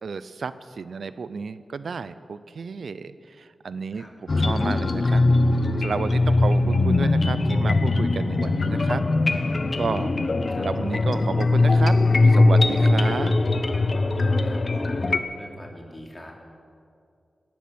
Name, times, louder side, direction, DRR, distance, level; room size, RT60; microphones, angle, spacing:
voice 1, 0.0-5.2 5.8-9.0 9.7-10.1 10.6-12.0 12.2-13.3, right 5 dB, 75° right, 14 dB, 0.6 m, -32 dB
sound 1, 4.3-15.2, left 2 dB, 50° left, 0.9 m, -21 dB
voice 2, 14.4-15.0 15.4-16.3, left 1 dB, 30° left, 0 dB, 3.4 m, -44 dB
18.0 x 12.0 x 6.1 m, 2.4 s
cardioid pair, 55°, 0 cm